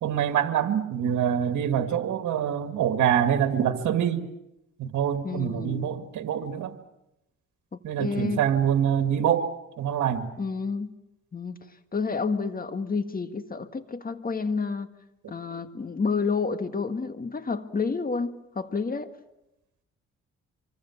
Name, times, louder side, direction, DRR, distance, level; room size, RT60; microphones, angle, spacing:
voice 1, 0.0-4.3 4.8-6.7 7.8-9.5 9.8-10.3, right 9 dB, 75° right, 8 dB, 2.0 m, -25 dB
voice 2, 5.2-5.9 8.0-8.4 10.4-10.9 11.3-11.6 11.9-14.9 15.3-19.1, left 4 dB, 30° left, 9 dB, 1.8 m, -29 dB
25.5 x 24.5 x 7.2 m, 0.90 s
cardioid pair, 90°, 30 cm